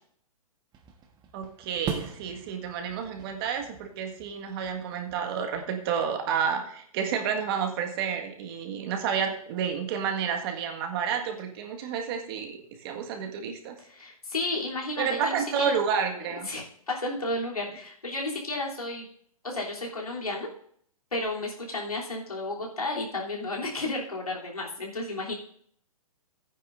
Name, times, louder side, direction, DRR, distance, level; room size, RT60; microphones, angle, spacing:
sound 1, 0.7-6.0, right 7 dB, 25° right, 1.4 m, -42 dB
voice 1, 1.3-13.8 15.0-16.5, right 7 dB, 45° right, 3 dB, 1.7 m, -30 dB
voice 2, 13.9-15.8 16.2-19.1 19.4-20.5 21.1-25.3, left 2 dB, 90° left, -3 dB, 3.3 m, -32 dB
15.5 x 9.4 x 2.6 m, 0.64 s
hypercardioid pair, 125°, 18 cm